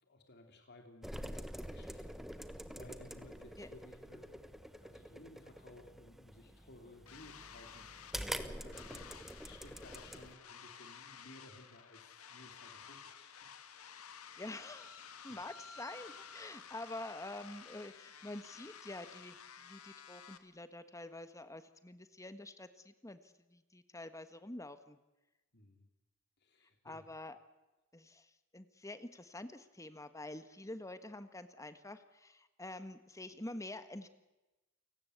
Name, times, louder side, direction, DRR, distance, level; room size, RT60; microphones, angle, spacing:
voice 1, 0.0-13.5 15.3-15.4 25.5-25.9 26.4-27.1, left 1 dB, 50° left, 4 dB, 3.4 m, -58 dB
sound 1, 1.0-10.3, equal, ahead, 1.2 m, -46 dB
sound 2, 7.1-20.4, left 7 dB, 85° left, 1.8 m, -53 dB
voice 2, 14.2-25.0 26.8-27.4 27.9-34.1, left 2 dB, 15° left, 11 dB, 1.4 m, -47 dB
29.0 x 18.0 x 8.2 m, 1.0 s
head